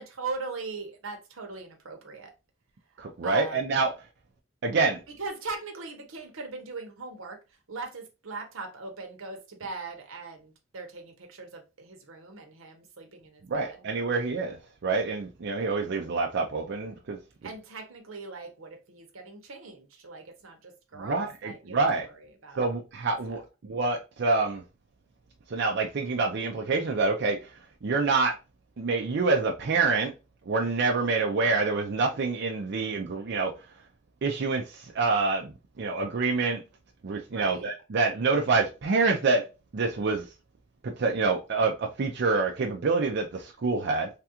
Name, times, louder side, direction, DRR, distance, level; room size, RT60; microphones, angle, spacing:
voice 1, 0.0-2.3 3.2-3.6 5.1-7.4 7.7-14.1 17.4-22.7 23.0-23.4 37.3-37.7, right 3 dB, 85° right, 0.8 m, -40 dB
voice 2, 3.0-3.9 4.6-5.0 13.5-17.2 21.0-22.1 22.6-24.6 25.5-27.5 27.8-28.4 28.8-30.1 30.5-33.5 34.2-36.6 37.0-39.5 39.7-40.2 40.8-44.1, right 3 dB, 55° right, 0.4 m, -27 dB
3.3 x 2.4 x 2.8 m
head